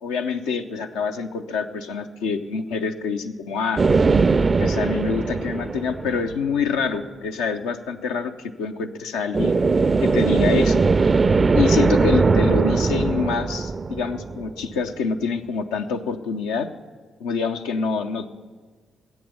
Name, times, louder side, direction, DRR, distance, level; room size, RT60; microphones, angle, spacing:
voice 1, 0.0-3.8 4.6-9.5 10.0-10.8 11.5-16.7 17.2-18.3, left 5 dB, 80° left, 5 dB, 0.6 m, -26 dB
sound 1, 3.8-6.6 9.3-14.8, right 4 dB, 40° right, 0.4 m, -20 dB
10.5 x 7.9 x 6.9 m, 1.5 s
hypercardioid pair, 40°, 0 cm